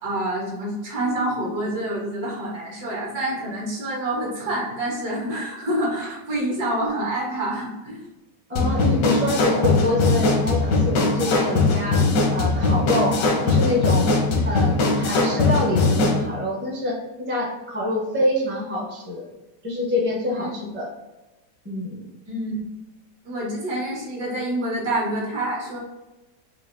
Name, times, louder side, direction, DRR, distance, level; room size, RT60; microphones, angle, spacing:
voice 1, 0.0-8.0 8.5-8.8 14.3-14.4 20.3-20.5 22.3-22.7 23.2-25.8, right 1 dB, 65° right, -4 dB, 1.7 m, -27 dB
voice 2, 8.5-12.0 12.3-14.1 14.4-19.3 19.6-20.9 21.6-22.1, left 1 dB, 15° right, -3 dB, 0.4 m, -26 dB
sound 1, 8.6-16.2, left 3 dB, 85° left, 1.4 m, -20 dB
4.9 x 2.6 x 2.5 m, 1.1 s
omnidirectional pair, 1.9 m